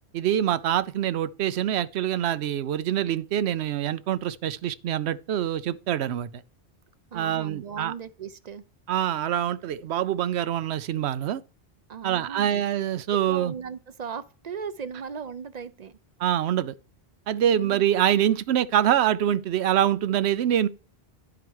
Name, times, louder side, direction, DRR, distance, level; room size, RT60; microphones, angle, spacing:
voice 1, 0.1-6.4 7.1-7.9 8.9-11.4 12.0-13.5 16.2-16.7 17.3-20.7, right 10 dB, 75° right, 0.8 m, -25 dB
voice 2, 7.1-8.6 11.9-12.7 13.2-16.0 17.5-17.8, right 6 dB, 50° right, 0.6 m, -37 dB
11.0 x 4.8 x 4.6 m
omnidirectional pair, 1.1 m